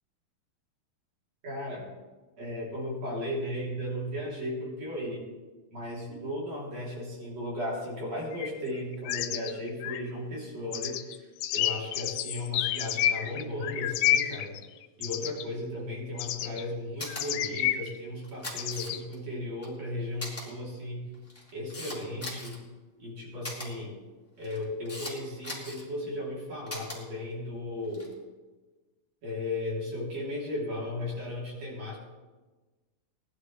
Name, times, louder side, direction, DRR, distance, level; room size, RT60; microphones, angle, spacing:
voice 1, 1.4-1.9 2.4-5.2 5.7-11.1 11.5-14.5 15.0-21.1 21.5-22.6 23.0-23.9 24.4-28.1 29.2-32.0, left 1 dB, 45° right, -4 dB, 4.5 m, -35 dB
sound 1, 8.3-8.5 8.8-10.0 10.7-15.4 16.2-16.6 17.1-17.9 18.6-19.0, left 12 dB, 85° left, 2.5 m, -30 dB
Camera, 17.0-17.2 18.2-19.2 19.6-19.7 20.2-20.4 21.1-22.6 23.4-23.7 24.4-25.1 25.4-25.8 26.7-27.0 27.8-28.1, left 1 dB, 5° left, 3.0 m, -39 dB
20.0 x 12.0 x 3.4 m, 1.3 s
omnidirectional pair, 4.5 m